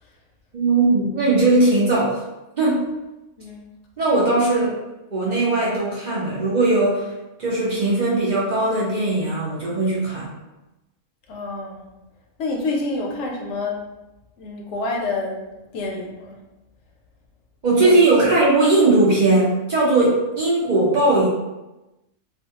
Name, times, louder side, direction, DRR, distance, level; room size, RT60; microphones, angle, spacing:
voice 1, 0.5-2.2 2.6-2.9 4.0-4.8 5.1-7.1 7.4-10.3 17.6-21.3, right 2 dB, 60° right, -5 dB, 0.4 m, -19 dB
voice 2, 11.3-11.8 12.4-13.9 14.4-15.4 15.7-16.4 17.8-18.0 18.3-18.4, left 3 dB, 65° left, 0 dB, 0.8 m, -28 dB
2.4 x 2.2 x 2.8 m, 1.0 s
omnidirectional pair, 1.5 m